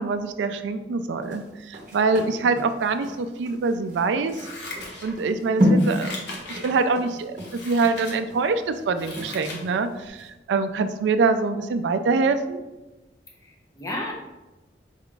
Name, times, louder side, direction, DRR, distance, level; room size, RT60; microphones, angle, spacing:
voice 1, 0.0-4.5 5.0-6.1 6.5-12.6, right 4 dB, 80° right, 10 dB, 0.3 m, -24 dB
sound 1, 1.2-9.8 10.2-10.3, equal, 45° right, 0.8 m, -29 dB
Scissors, 4.3-5.4 5.7-6.8 7.3-8.2 8.6-9.7 10.0-10.1, left 2 dB, 70° left, 0.8 m, -38 dB
voice 2, 13.4-14.1, left 1 dB, 20° left, 0 dB, 0.6 m, -33 dB
4.4 x 2.4 x 3.8 m, 1.1 s
head